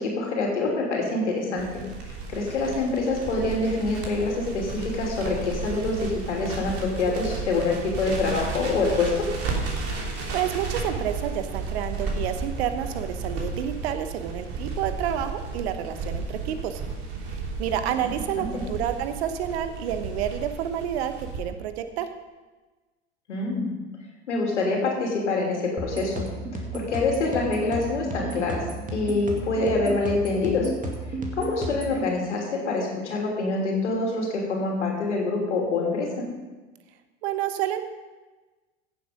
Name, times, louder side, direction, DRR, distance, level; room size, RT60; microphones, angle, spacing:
voice 1, 0.0-1.8 2.3-9.3 18.0-18.1 18.4-18.6 23.3-23.7 24.3-26.2 26.5-30.7 31.4-36.2, left 3 dB, 75° left, -1 dB, 3.0 m, -26 dB
Crackle, 1.6-21.4, right 3 dB, 40° right, 3.1 m, -33 dB
voice 2, 10.3-16.8 17.3-22.1 37.2-37.8, right 10 dB, 60° right, 9 dB, 1.1 m, -29 dB
sound 1, 25.8-32.0, right 2 dB, 20° right, 2.3 m, -33 dB
15.5 x 7.6 x 5.2 m, 1.2 s
figure-of-eight pair, 80°, 36 cm